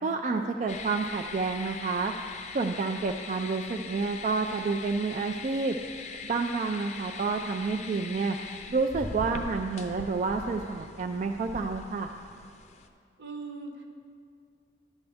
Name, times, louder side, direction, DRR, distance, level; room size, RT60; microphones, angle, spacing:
voice 1, 0.0-2.1 2.5-5.8 6.2-8.4 8.7-12.1, right 4 dB, 40° right, 4 dB, 0.3 m, -29 dB
sound 1, 0.7-12.9, left 4 dB, 40° left, 0.5 m, -42 dB
voice 2, 13.2-13.9, right 3 dB, 75° right, 2 dB, 1.0 m, -41 dB
11.0 x 8.1 x 3.5 m, 2.2 s
head